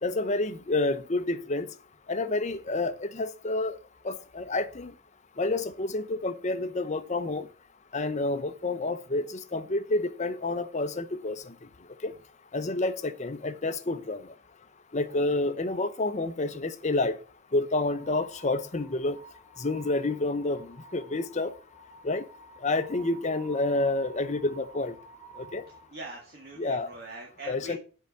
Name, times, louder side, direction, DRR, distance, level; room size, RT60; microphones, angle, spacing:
voice 1, 0.0-1.7 2.1-3.8 4.0-4.9 5.4-7.5 7.9-11.5 12.0-12.1 12.5-14.3 14.9-17.2 17.5-19.2 19.6-21.5 22.0-22.2 22.6-24.9 25.4-25.6 26.6-26.9 27.5-27.8, left 2 dB, 35° left, 0.7 m, -29 dB
sound 1, 17.8-25.9, right 2 dB, 5° right, 2.7 m, -51 dB
voice 2, 25.9-27.8, right 2 dB, 50° right, 1.8 m, -42 dB
7.9 x 4.7 x 6.8 m
head